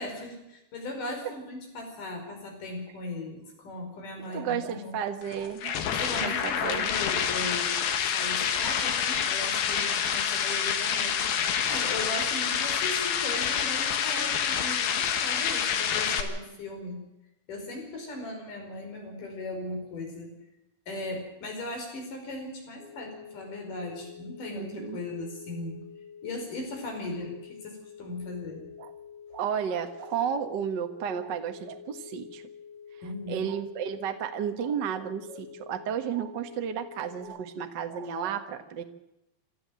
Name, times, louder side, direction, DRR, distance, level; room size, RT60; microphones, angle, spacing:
voice 1, 0.0-5.0 5.9-7.8 8.1-17.0 17.5-20.4 20.9-25.9 26.2-28.7 33.0-33.5, left 2 dB, 55° left, 3 dB, 6.6 m, -38 dB
voice 2, 4.3-6.9 8.6-8.7 24.5-25.0 28.8-28.9 29.3-32.4 33.3-38.8, right 8 dB, 65° right, 6 dB, 1.1 m, -33 dB
sound 1, 5.2-16.2, left 8 dB, 70° left, 3.3 m, -27 dB
sound 2, 22.8-37.2, left 7 dB, 20° left, 6.5 m, -47 dB
27.0 x 13.0 x 7.7 m, 0.89 s
omnidirectional pair, 4.5 m